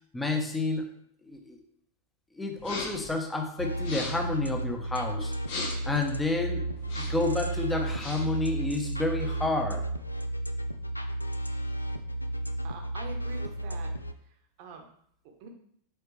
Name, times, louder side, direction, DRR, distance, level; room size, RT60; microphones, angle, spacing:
voice 1, 0.1-0.9 1.2-1.6 2.4-5.3 5.8-6.6 7.0-9.8, left 2 dB, 10° left, 3 dB, 1.1 m, -30 dB
sound 1, 2.6-3.1 3.7-4.3 5.4-6.0 6.8-7.3 7.8-8.4, left 3 dB, 50° left, 1.4 m, -38 dB
sound 2, 3.6-14.1, right 1 dB, 85° left, 0.4 m, -33 dB
voice 2, 12.6-13.9 14.3-14.8 15.4-15.5, right 5 dB, 45° right, 3 dB, 1.2 m, -44 dB
8.0 x 4.3 x 3.3 m, 0.66 s
figure-of-eight pair, 90°, 0 cm